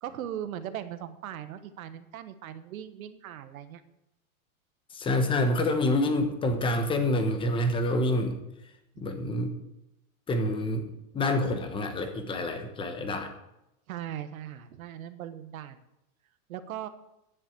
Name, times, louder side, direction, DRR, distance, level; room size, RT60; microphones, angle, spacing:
voice 1, 0.0-3.8 8.9-9.3 13.9-15.8 16.5-16.9, right 10 dB, 70° right, 11 dB, 1.3 m, -39 dB
voice 2, 4.9-8.4 9.0-9.5 10.3-13.3, left 1 dB, 10° left, 6 dB, 1.1 m, -27 dB
10.0 x 7.5 x 7.8 m, 0.88 s
supercardioid pair, 155°, 43 cm